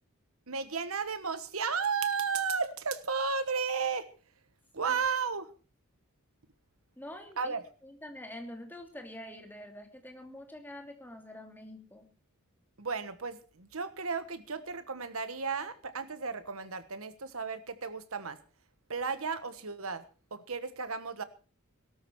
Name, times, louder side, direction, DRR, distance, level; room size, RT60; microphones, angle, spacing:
voice 1, 0.5-4.1 4.7-5.5 7.4-7.6 12.8-18.4 18.9-20.0 20.3-21.2, right 5 dB, 70° right, 12 dB, 1.3 m, -33 dB
voice 2, 7.0-12.1, left 1 dB, 10° left, 3 dB, 2.8 m, -46 dB
18.0 x 12.5 x 4.7 m, 0.35 s
head